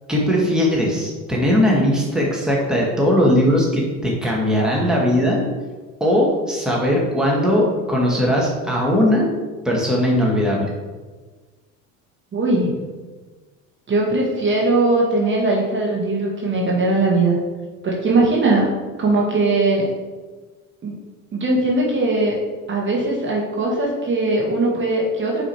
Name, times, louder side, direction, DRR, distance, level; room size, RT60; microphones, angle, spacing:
voice 1, 0.1-5.4 6.0-9.3 9.6-10.6, equal, ahead, -3 dB, 1.7 m, -19 dB
voice 2, 12.3-12.8 13.9-17.4 17.8-18.7 19.0-19.9 20.8-21.0 21.3-22.4 22.7-25.5, right 2 dB, 35° right, -2 dB, 1.4 m, -20 dB
4.9 x 4.8 x 4.6 m, 1.3 s
supercardioid pair, 95°, 35 cm